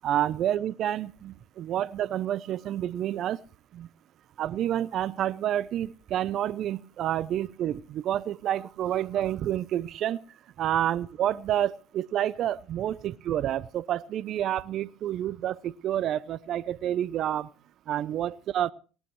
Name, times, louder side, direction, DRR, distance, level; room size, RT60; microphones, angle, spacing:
voice 1, 0.0-3.4 3.7-3.9 4.4-10.2 10.6-17.5 17.9-18.7, right 11 dB, 55° right, 0.6 m, -29 dB
19.0 x 18.5 x 3.1 m
hypercardioid pair, 75°, 0 cm